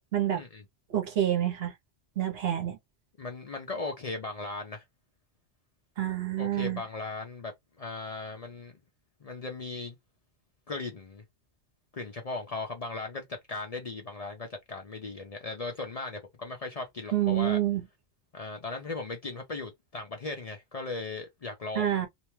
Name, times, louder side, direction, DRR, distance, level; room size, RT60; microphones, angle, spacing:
voice 1, 0.9-1.7 2.2-2.8 6.0-6.8 17.1-17.8 21.7-22.1, right 12 dB, 65° right, 1.0 m, -27 dB
voice 2, 3.2-4.8 6.4-8.7 9.2-10.0 10.7-11.2 11.9-17.6 18.3-22.0, left 3 dB, 45° left, 0.6 m, -37 dB
2.7 x 2.2 x 3.0 m
omnidirectional pair, 1.1 m